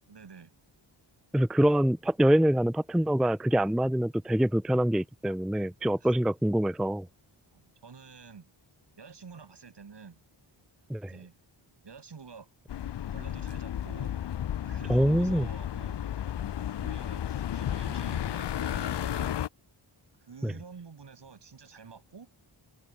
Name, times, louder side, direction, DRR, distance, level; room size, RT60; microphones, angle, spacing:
voice 1, 0.1-0.5 6.0-6.1 7.5-8.5 9.0-10.2 11.1-11.4 11.8-12.5 13.1-14.2 14.6-16.0 16.8-19.4 20.2-22.3, right 5 dB, 55° right, 3.9 m, -49 dB
voice 2, 1.3-7.1 10.9-11.1 14.9-15.5 20.4-20.5, right 1 dB, ahead, 0.5 m, -25 dB
sound 1, 12.7-19.5, left 10 dB, 60° left, 0.6 m, -33 dB
wide cardioid pair, 120°, 48 cm